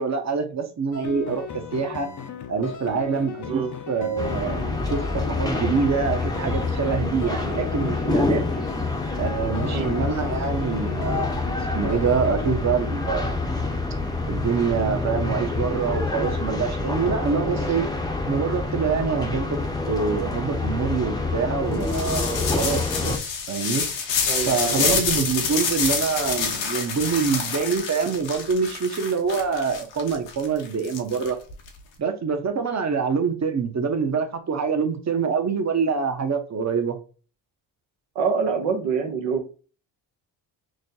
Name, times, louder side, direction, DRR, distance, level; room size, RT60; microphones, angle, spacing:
voice 1, 0.0-2.1 2.5-8.4 9.2-11.3 11.7-13.4 14.3-17.9 18.3-19.6 19.8-23.8 24.5-31.4 32.0-37.0, right 5 dB, 40° right, 6 dB, 1.0 m, -25 dB
sound 1, 0.9-12.5, left 8 dB, 40° left, 0.7 m, -37 dB
sound 2, 4.2-23.2, left 3 dB, 10° left, 0.7 m, -27 dB
sound 3, 21.8-31.7, left 6 dB, 80° left, 1.1 m, -27 dB
voice 2, 24.2-25.0 38.1-39.5, right 5 dB, 75° right, 2 dB, 1.0 m, -26 dB
6.2 x 2.2 x 2.7 m, 0.37 s
supercardioid pair, 65°, 44 cm